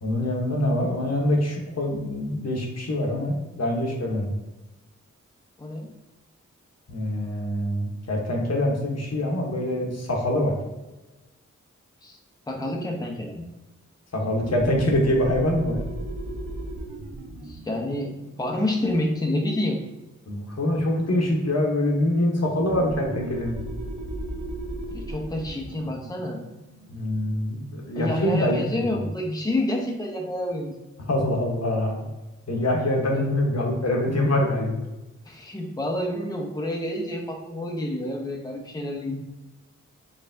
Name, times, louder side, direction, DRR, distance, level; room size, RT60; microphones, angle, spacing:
voice 1, 0.0-4.3 6.9-10.5 14.1-15.8 20.3-23.6 26.9-28.7 31.1-32.1 32.5-34.9, left 1 dB, 55° left, 0 dB, 1.0 m, -24 dB
voice 2, 5.6-5.9 12.0-12.2 12.5-13.5 17.4-19.8 24.9-26.4 27.9-30.7 33.1-33.2 35.2-39.3, left 1 dB, 15° left, 1 dB, 0.6 m, -28 dB
sound 1, 14.2-19.5 22.5-27.8, right 1 dB, 85° right, 0.6 m, -37 dB
4.2 x 3.3 x 2.6 m, 1.1 s
cardioid pair, 45°, 30 cm